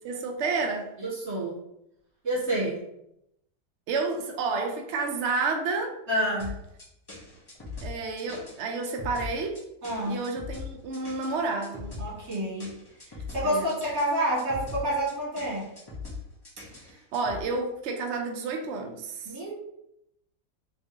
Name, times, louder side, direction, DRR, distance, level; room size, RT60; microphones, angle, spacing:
voice 1, 0.0-0.9 3.9-6.0 7.8-9.6 10.1-12.0 13.4-13.7 17.1-19.4, right 4 dB, 85° right, 0.6 m, -30 dB
voice 2, 1.0-1.6 2.2-2.8 6.1-6.6 9.8-10.2 12.0-12.8 13.3-15.7 19.3-19.5, right 1 dB, 40° right, 1.8 m, -28 dB
sound 1, 6.4-17.4, left 4 dB, 20° left, 0.7 m, -40 dB
3.4 x 3.2 x 2.7 m
omnidirectional pair, 1.8 m